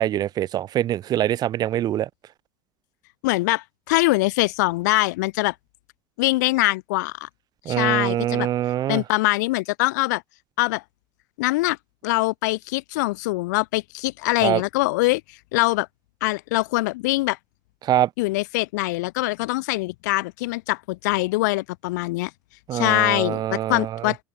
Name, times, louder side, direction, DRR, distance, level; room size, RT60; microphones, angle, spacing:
voice 1, 0.0-2.1 7.6-9.0 14.4-14.6 17.8-18.1 22.7-24.1, right 12 dB, 45° right, 1.1 m, -24 dB
voice 2, 3.2-5.5 6.2-7.3 7.7-8.5 8.9-10.2 10.6-10.8 11.4-11.8 12.0-15.2 15.5-15.9 16.2-17.4 18.2-22.3 22.7-24.2, left 21 dB, 70° left, 0.7 m, -23 dB
open air
hypercardioid pair, 85°, 10 cm